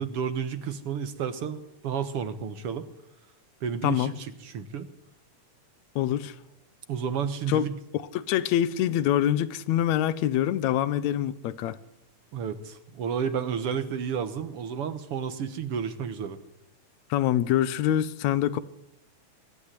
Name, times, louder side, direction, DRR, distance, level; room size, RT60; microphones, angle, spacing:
voice 1, 0.0-2.9 3.6-4.9 6.9-7.7 12.3-16.4, right 7 dB, 60° right, 1.9 m, -31 dB
voice 2, 6.0-6.3 7.5-7.7 7.9-11.8 17.1-18.6, left 11 dB, 75° left, 2.1 m, -25 dB
23.0 x 12.0 x 10.0 m
omnidirectional pair, 3.4 m